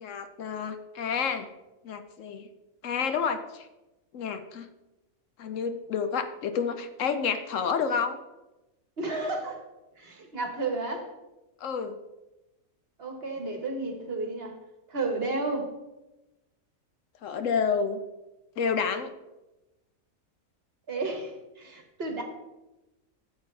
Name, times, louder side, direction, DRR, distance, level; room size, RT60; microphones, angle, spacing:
voice 1, 0.0-1.5 1.8-2.5 2.8-3.7 4.1-4.7 5.4-8.2 11.6-12.0 17.2-18.0 18.6-19.1, left 6 dB, 70° left, 9 dB, 1.0 m, -29 dB
voice 2, 9.0-9.6 10.0-11.1 13.0-14.5 14.9-15.7 20.9-22.2, right 3 dB, 45° right, 4 dB, 1.4 m, -32 dB
12.5 x 7.3 x 3.2 m, 1.0 s
omnidirectional pair, 1.5 m